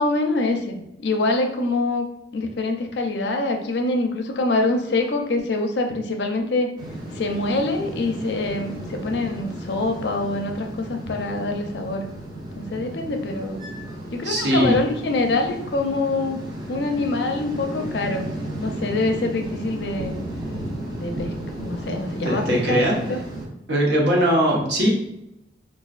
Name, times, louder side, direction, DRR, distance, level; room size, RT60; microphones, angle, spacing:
voice 1, 0.0-2.0 2.3-6.7 7.1-12.1 12.6-13.6 14.1-16.4 16.7-18.2 18.6-20.2 20.9-23.2, left 2 dB, 65° left, 3 dB, 0.5 m, -25 dB
sound 1, 6.8-23.5, right 1 dB, 20° right, 0.7 m, -34 dB
voice 2, 14.2-14.7 21.8-23.0 23.7-24.9, equal, 70° right, -3 dB, 1.0 m, -21 dB
4.1 x 2.4 x 2.4 m, 0.84 s
head